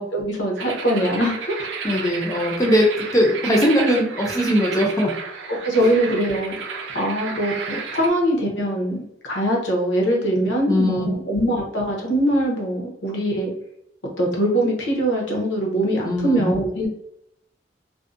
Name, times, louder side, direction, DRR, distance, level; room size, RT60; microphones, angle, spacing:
voice 1, 0.0-1.7 5.5-6.5 6.9-13.5 14.2-16.9, right 1 dB, 85° left, 0 dB, 0.7 m, -22 dB
sound 1, 0.6-8.1, right 5 dB, 80° right, 0.4 m, -32 dB
voice 2, 1.8-5.1 5.8-5.9 10.7-11.1 16.0-16.4, equal, 20° left, 0 dB, 0.4 m, -20 dB
2.5 x 2.0 x 2.4 m, 0.76 s
head